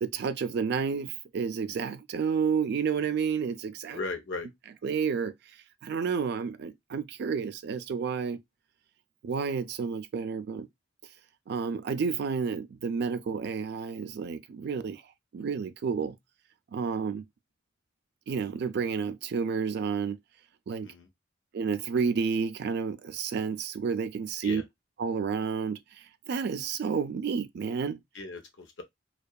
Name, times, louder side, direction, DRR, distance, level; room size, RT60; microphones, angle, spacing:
voice 1, 0.0-4.0 4.8-5.3 5.8-8.4 9.2-10.7 11.5-15.0 15.3-16.2 16.7-17.3 18.3-20.2 20.7-20.9 21.5-24.6 25.0-28.0, right 6 dB, 55° right, 0.3 m, -30 dB
voice 2, 3.9-4.5 20.8-21.1 24.4-24.6 28.1-28.8, left 3 dB, 70° left, 0.6 m, -37 dB
2.6 x 2.3 x 2.2 m
head